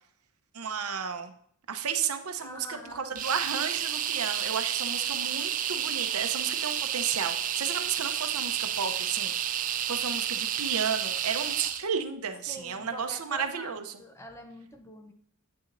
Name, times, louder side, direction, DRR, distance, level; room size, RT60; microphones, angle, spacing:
voice 1, 0.5-1.3 1.7-9.6 9.9-13.8, right 7 dB, 80° right, 7 dB, 0.8 m, -33 dB
voice 2, 2.4-3.2 12.5-15.1, left 1 dB, 10° left, 5 dB, 0.6 m, -45 dB
sound 1, 3.2-11.8, right 10 dB, 35° right, 0.4 m, -31 dB
8.5 x 7.0 x 2.6 m, 0.66 s
head